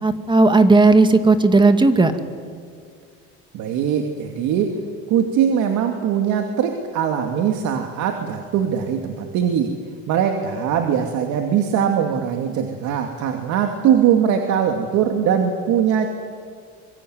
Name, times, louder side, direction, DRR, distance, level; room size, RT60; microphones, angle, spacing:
voice 1, 0.0-2.1, right 3 dB, 15° right, 8 dB, 2.2 m, -14 dB
voice 2, 3.5-4.7 5.1-9.7 10.1-16.1, right 8 dB, 65° right, 4 dB, 2.6 m, -21 dB
26.0 x 23.0 x 9.5 m, 2.1 s
cardioid pair, 115°, 31 cm